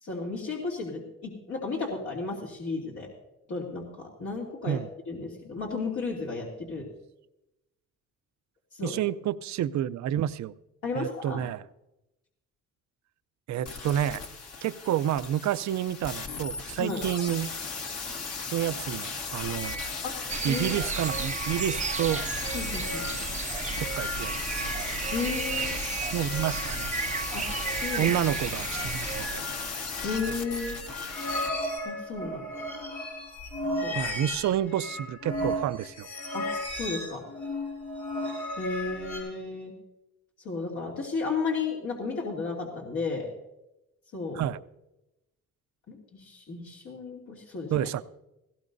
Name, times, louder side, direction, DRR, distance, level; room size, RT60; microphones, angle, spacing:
voice 1, 0.0-3.1 3.5-4.8 5.1-6.9 8.7-9.0 10.8-11.4 16.8-17.0 20.0-20.2 20.5-20.7 22.5-23.0 25.1-25.8 27.3-27.5 27.7-28.1 30.0-30.8 31.8-32.4 33.8-34.0 36.3-36.5 36.7-37.2 38.6-39.7 40.4-43.3 44.1-44.4 45.9-47.9, left 4 dB, 70° left, -3 dB, 2.8 m, -33 dB
voice 2, 8.8-10.5 11.0-11.6 13.5-14.2 14.6-17.5 18.5-19.8 20.4-22.2 23.8-24.9 26.1-26.9 28.0-29.4 33.9-36.1 44.3-44.6 47.7-48.0, right 11 dB, 65° right, 15 dB, 0.6 m, -29 dB
sound 1, 13.7-31.5 31.8-31.9, left 4 dB, 55° left, 1.8 m, -36 dB
sound 2, 19.4-39.2, left 1 dB, 85° left, 6.3 m, -36 dB
sound 3, 20.3-29.3, right 6 dB, 25° right, 0.5 m, -34 dB
18.0 x 17.0 x 2.6 m, 0.91 s
cardioid pair, 90°, 30 cm